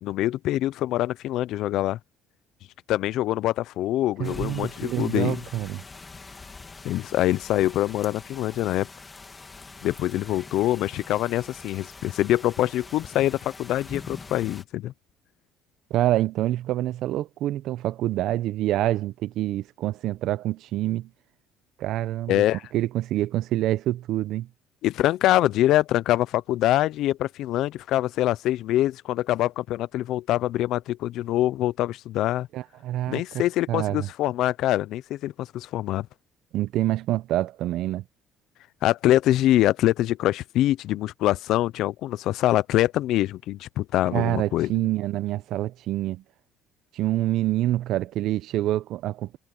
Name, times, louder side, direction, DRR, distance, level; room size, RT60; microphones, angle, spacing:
voice 1, 0.0-2.0 2.9-5.4 6.8-8.9 9.8-14.9 22.3-22.6 24.8-32.5 33.1-36.1 38.8-44.7, left 14 dB, 70° left, 0.7 m, -24 dB
sound 1, 4.2-14.6, left 4 dB, 25° left, 3.0 m, -44 dB
voice 2, 4.2-5.8 15.9-21.1 21.8-22.4 22.7-24.5 32.5-33.4 33.7-34.1 36.5-38.0 44.1-46.2 46.9-49.4, right 14 dB, 70° right, 0.8 m, -26 dB
supercardioid pair, 90°, 0 cm